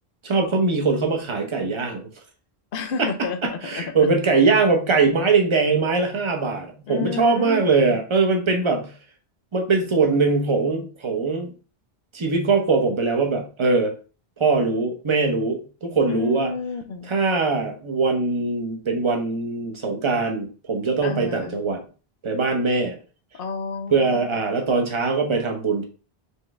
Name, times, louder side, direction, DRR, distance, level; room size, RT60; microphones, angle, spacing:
voice 1, 0.2-2.0 3.0-3.1 3.4-8.9 9.5-11.5 12.1-13.9 14.4-16.5 17.1-21.8 22.2-23.0 23.9-25.8, right 4 dB, 30° right, 3 dB, 0.9 m, -21 dB
voice 2, 2.7-3.9 6.9-7.6 7.9-8.0 16.1-17.1 21.0-21.6 23.3-24.4, left 5 dB, 60° left, 8 dB, 0.8 m, -31 dB
4.6 x 3.4 x 3.1 m, 0.36 s
omnidirectional pair, 1.1 m